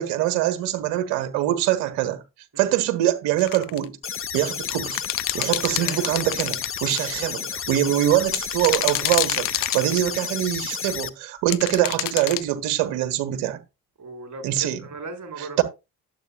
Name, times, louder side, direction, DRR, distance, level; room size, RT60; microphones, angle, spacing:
voice 1, 0.0-2.2 2.6-4.0 4.3-5.0 5.3-13.6 14.4-14.8 15.4-15.6, right 13 dB, 80° right, 1.4 m, -24 dB
sound 1, 3.4-3.8 4.6-7.1 8.3-10.3 11.5-12.4, left 16 dB, 60° left, 0.6 m, -27 dB
sound 2, 4.0-11.1, left 7 dB, 35° left, 0.9 m, -32 dB
voice 2, 5.4-6.1 14.0-15.6, right 3 dB, 50° right, 4.2 m, -37 dB
11.5 x 7.9 x 2.3 m
hypercardioid pair, 50°, 38 cm